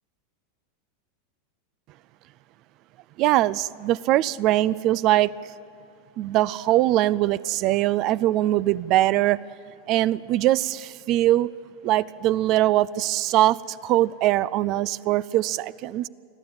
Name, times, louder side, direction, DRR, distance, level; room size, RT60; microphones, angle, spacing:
voice 1, 3.2-5.3 6.2-9.4 9.9-11.5 11.8-16.1, right 15 dB, 45° right, 0.4 m, -22 dB
24.5 x 14.5 x 8.8 m
supercardioid pair, 125°, 0 cm